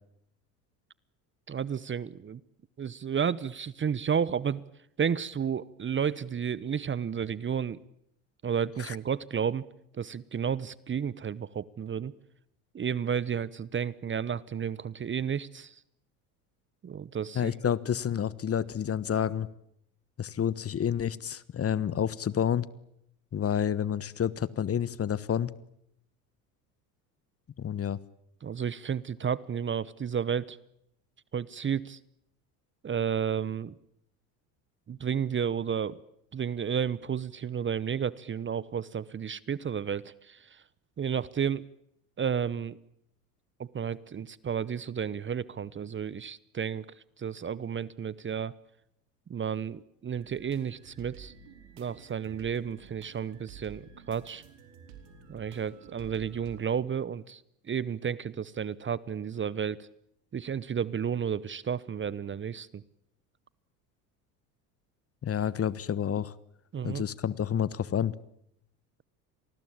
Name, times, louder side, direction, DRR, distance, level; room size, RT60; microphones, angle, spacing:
voice 1, 1.5-2.4 2.8-4.6 5.0-7.8 8.4-9.7 9.9-12.1 12.7-15.8 16.8-17.7 28.4-30.6 31.3-32.0 32.8-33.8 34.9-36.0 36.3-40.6 41.0-41.6 42.2-42.8 43.6-48.5 49.3-51.3 51.8-54.4 55.3-59.9 60.3-62.8 66.7-67.0, right 7 dB, 25° right, 21 dB, 1.0 m, -32 dB
voice 2, 17.3-19.5 20.2-22.7 23.3-25.5 27.6-28.0 65.2-66.3 66.8-68.1, left 9 dB, 30° left, 20 dB, 1.3 m, -29 dB
sound 1, 50.1-56.6, right 7 dB, 70° right, 4.8 m, -51 dB
27.5 x 20.0 x 8.7 m, 0.73 s
hypercardioid pair, 75°, 44 cm